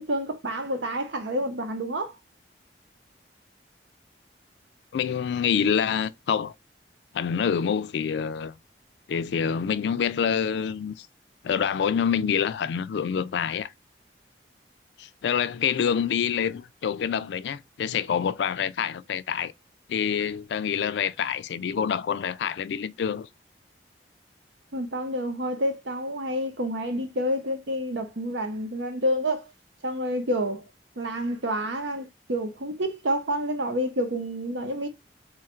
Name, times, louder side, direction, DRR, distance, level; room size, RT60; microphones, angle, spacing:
voice 1, 0.0-2.2 24.7-29.4 29.8-30.7 31.0-34.9, equal, 85° right, 0.8 m, -29 dB
voice 2, 4.9-6.5 7.1-8.5 9.1-11.1 11.4-13.7 15.0-19.5 19.9-23.3, left 7 dB, 75° left, 0.3 m, -26 dB
3.2 x 2.4 x 4.3 m
head